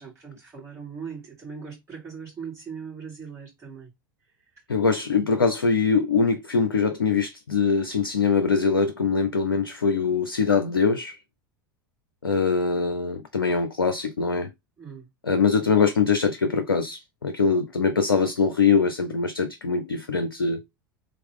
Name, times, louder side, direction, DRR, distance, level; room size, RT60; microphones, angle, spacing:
voice 1, 0.0-3.9 14.8-15.1, right 6 dB, 25° right, 2.7 m, -39 dB
voice 2, 4.7-11.2 12.2-14.5 15.2-20.6, left 5 dB, 80° left, 0.5 m, -23 dB
3.6 x 3.0 x 3.6 m
figure-of-eight pair, 85°, 12 cm